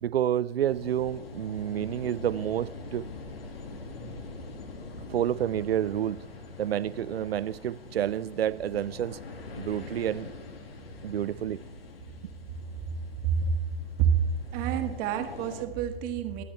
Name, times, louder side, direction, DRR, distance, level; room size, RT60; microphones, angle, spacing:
voice 1, 0.0-3.1 5.1-6.2 6.6-9.2 9.6-10.3 11.0-11.6, right 10 dB, 80° right, 0.5 m, -29 dB
sound 1, 0.7-15.6, left 3 dB, 75° left, 2.2 m, -43 dB
voice 2, 13.2-13.5 14.0-14.2 14.5-16.4, right 7 dB, 30° right, 1.4 m, -27 dB
24.0 x 8.5 x 3.3 m
hypercardioid pair, 130°, 30 cm